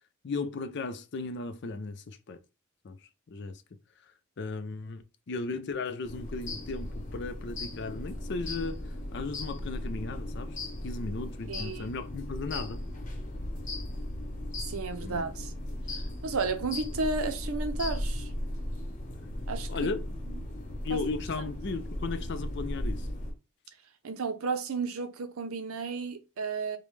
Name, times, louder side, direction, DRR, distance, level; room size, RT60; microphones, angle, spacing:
voice 1, 0.2-2.4 2.8-3.0 3.3-3.6 4.0-4.1 4.4-10.6 10.8-12.8 15.0-15.2 19.7-20.0 20.8-23.1, left 3 dB, 55° left, 0.4 m, -36 dB
sound 1, 6.0-23.3, left 1 dB, 35° left, 0.9 m, -36 dB
voice 2, 11.5-11.9 14.7-15.5 15.9-18.3 19.5-19.7 20.9-21.0 24.0-26.8, right 4 dB, 85° right, 0.7 m, -33 dB
5.1 x 2.2 x 3.2 m
head